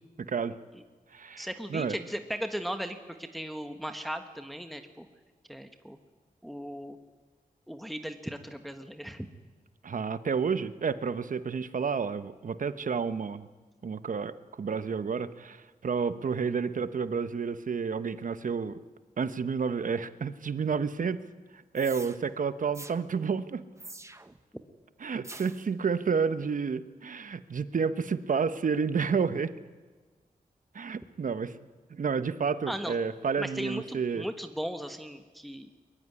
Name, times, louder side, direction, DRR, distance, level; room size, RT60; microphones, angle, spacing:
voice 1, 0.2-0.6 1.1-1.9 9.8-13.5 13.8-18.8 19.2-21.2 21.7-23.6 25.0-29.5 30.7-31.5 31.9-34.2, right 5 dB, 60° right, 12 dB, 1.1 m, -30 dB
voice 2, 1.4-5.1 5.5-6.0 6.4-7.0 7.7-9.3 32.7-32.9 33.4-35.7, equal, ahead, 7 dB, 1.5 m, -37 dB
sound 1, 21.8-22.2 22.7-23.0 23.8-24.4 25.2-25.7, right 2 dB, 20° right, 1.2 m, -45 dB
22.5 x 21.5 x 9.8 m, 1.4 s
wide cardioid pair, 85°, 15 cm